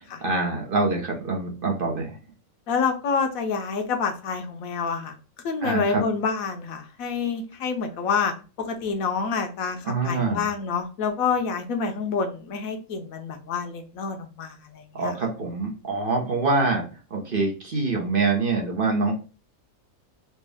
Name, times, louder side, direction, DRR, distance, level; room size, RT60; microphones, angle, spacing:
voice 1, 0.2-2.2 5.6-6.0 9.8-10.5 14.9-16.9 17.1-19.2, right 3 dB, 45° right, 1 dB, 0.9 m, -25 dB
voice 2, 2.7-5.1 5.4-15.2, left 5 dB, 80° left, 5 dB, 1.2 m, -28 dB
4.4 x 2.2 x 3.4 m, 0.34 s
omnidirectional pair, 1.4 m